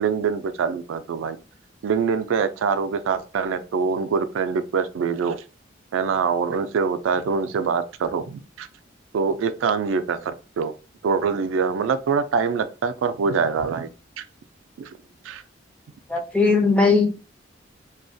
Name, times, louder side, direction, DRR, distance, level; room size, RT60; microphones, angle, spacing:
voice 1, 0.0-1.4 1.8-5.4 5.9-8.7 9.1-10.7 11.0-13.9 14.2-14.3 14.8-14.9 15.2-15.4, right 5 dB, 85° right, 11 dB, 0.3 m, -24 dB
voice 2, 16.1-17.2, left 4 dB, 5° left, 4 dB, 0.4 m, -19 dB
2.3 x 2.1 x 2.5 m, 0.33 s
head